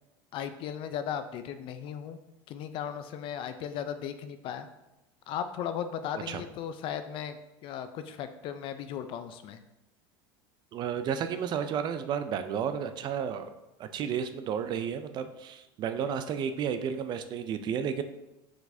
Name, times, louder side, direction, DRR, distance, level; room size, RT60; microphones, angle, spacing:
voice 1, 0.3-2.2 2.5-4.7 5.3-9.6, left 8 dB, 45° left, 10 dB, 0.4 m, -36 dB
voice 2, 10.7-13.5 13.8-18.0, right 7 dB, 40° right, 9 dB, 0.4 m, -32 dB
4.7 x 3.9 x 2.7 m, 0.94 s
supercardioid pair, 120°, 12 cm